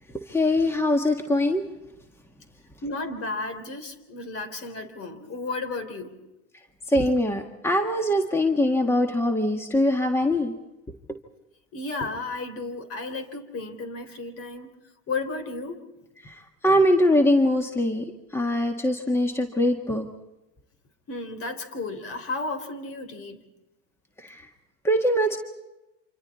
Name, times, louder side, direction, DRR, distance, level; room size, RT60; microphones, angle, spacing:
voice 1, 0.3-1.6 6.9-10.5 16.2-20.1 24.2-24.5 24.8-25.4, left 1 dB, 5° left, 4 dB, 1.7 m, -22 dB
voice 2, 2.8-6.1 11.7-14.7 15.1-15.8 21.1-23.4, left 3 dB, 40° left, 10 dB, 3.6 m, -33 dB
28.5 x 26.5 x 4.3 m, 0.99 s
supercardioid pair, 105°, 34 cm